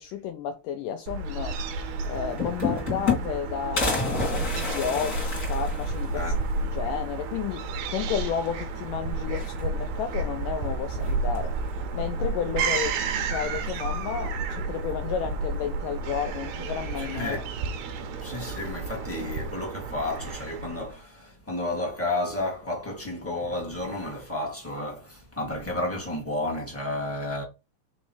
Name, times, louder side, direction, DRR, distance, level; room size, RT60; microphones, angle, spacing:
voice 1, 0.0-6.3 6.7-13.0 13.3-17.4, left 8 dB, 85° left, 1.9 m, -32 dB
Fowl / Gull seagull, 1.1-20.9, right 3 dB, 85° right, 1.6 m, -31 dB
sound 1, 1.8-1.9 2.1-3.4 3.8-6.4 6.8-6.9 7.1-7.2 8.4-8.9 9.2-10.0 11.0-11.6, left 4 dB, 25° left, 2.6 m, -30 dB
voice 2, 17.0-17.4 18.2-27.4, left 2 dB, 10° left, 0.8 m, -32 dB
5.2 x 4.0 x 4.6 m
omnidirectional pair, 4.5 m